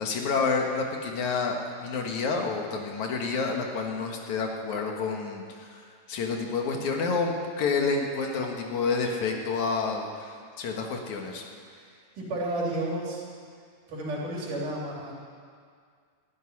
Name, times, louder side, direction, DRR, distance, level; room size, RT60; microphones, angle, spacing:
voice 1, 0.0-11.4, left 4 dB, 70° left, 2 dB, 2.8 m, -29 dB
voice 2, 12.2-13.2 13.9-15.1, right 1 dB, 75° right, -4 dB, 4.6 m, -32 dB
13.0 x 11.5 x 9.8 m, 2.1 s
omnidirectional pair, 3.6 m